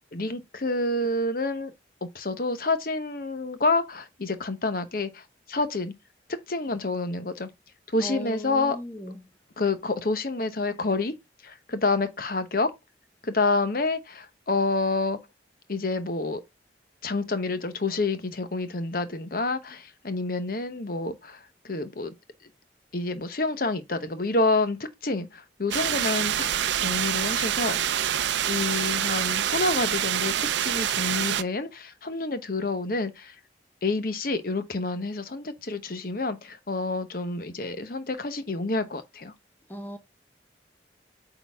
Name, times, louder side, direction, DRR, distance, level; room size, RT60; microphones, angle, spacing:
voice 1, 0.1-1.7 2.1-5.9 6.5-7.5 7.9-8.8 9.6-11.1 11.4-12.7 13.2-15.2 15.7-16.4 17.0-22.1 22.9-26.4 26.8-27.8 28.5-33.4 33.8-39.3, left 3 dB, 50° left, 0.9 m, -28 dB
voice 2, 8.0-9.2 39.7-40.0, equal, 10° left, 0.7 m, -37 dB
sound 1, 25.7-31.4, right 10 dB, 75° right, 0.5 m, -26 dB
8.4 x 4.0 x 3.5 m
head